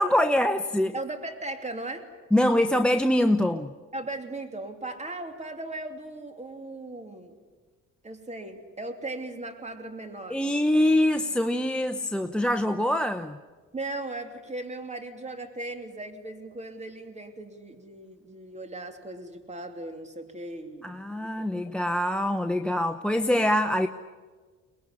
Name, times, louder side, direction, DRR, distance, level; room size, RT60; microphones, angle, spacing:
voice 1, 0.0-0.9 2.3-3.7 10.3-13.4 20.8-23.9, left 1 dB, 5° left, 11 dB, 0.9 m, -24 dB
voice 2, 0.9-2.1 3.9-7.4 8.0-10.4 13.7-21.5, right 2 dB, 20° right, 6 dB, 3.1 m, -38 dB
23.5 x 20.5 x 9.9 m, 1.4 s
cardioid pair, 90°, 30 cm